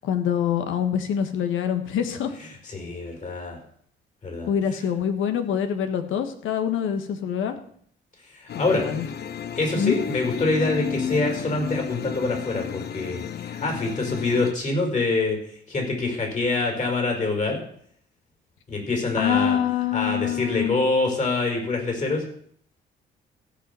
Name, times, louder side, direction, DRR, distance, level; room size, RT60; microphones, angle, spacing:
voice 1, 0.0-2.3 4.5-7.5 8.5-9.1 9.8-10.0 19.2-20.8, left 8 dB, 85° left, 7 dB, 1.5 m, -25 dB
voice 2, 2.4-3.6 4.2-4.5 8.3-8.8 9.5-15.4 15.7-17.6 18.7-19.6 19.9-22.2, left 3 dB, 35° left, 2 dB, 5.3 m, -25 dB
sound 1, 8.5-14.5, left 9 dB, 55° left, 0.7 m, -32 dB
16.0 x 5.4 x 7.0 m, 0.63 s
cardioid pair, 90°, 20 cm